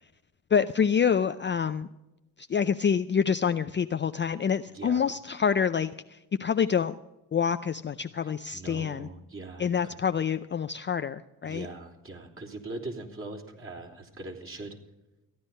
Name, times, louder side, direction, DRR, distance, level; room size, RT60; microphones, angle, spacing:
voice 1, 0.5-1.9 2.4-6.9 7.3-9.1 9.6-11.7, left 7 dB, 30° left, 9 dB, 0.5 m, -27 dB
voice 2, 8.2-10.0 11.4-14.8, right 2 dB, 30° right, -1 dB, 3.3 m, -41 dB
15.0 x 10.5 x 5.4 m, 0.97 s
supercardioid pair, 75°, 41 cm